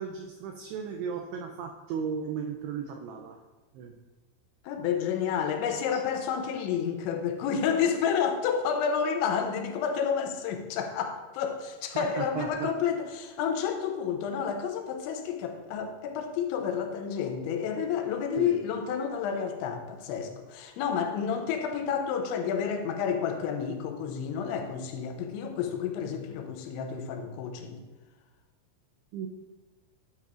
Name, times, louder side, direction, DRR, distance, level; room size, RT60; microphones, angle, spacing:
voice 1, 0.0-3.4 3.7-4.0 5.9-6.0 12.0-12.7 18.4-18.6 29.1-29.3, right 6 dB, 85° right, 2 dB, 2.4 m, -35 dB
voice 2, 4.6-27.8, left 7 dB, 85° left, 5 dB, 3.0 m, -30 dB
9.6 x 8.5 x 2.4 m, 1.2 s
omnidirectional pair, 5.2 m